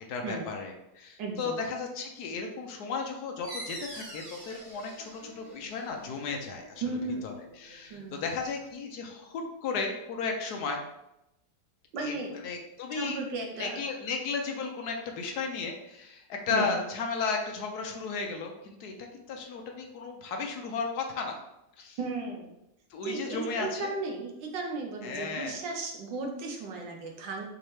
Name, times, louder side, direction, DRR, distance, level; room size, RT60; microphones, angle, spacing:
voice 1, 0.1-6.8 7.2-7.3 7.6-10.8 12.0-12.2 12.4-13.2 13.5-21.4 21.8-22.0 22.9-23.9 25.0-25.6, left 4 dB, 70° left, 3 dB, 1.1 m, -34 dB
voice 2, 1.2-1.6 6.8-7.3 7.9-8.2 11.9-12.3 12.9-13.8 16.5-16.7 22.0-22.5 23.0-27.4, right 3 dB, 85° right, 2 dB, 1.5 m, -35 dB
sound 1, 3.4-8.7, right 1 dB, 25° right, 0.7 m, -46 dB
5.3 x 2.9 x 3.2 m, 0.88 s
omnidirectional pair, 1.9 m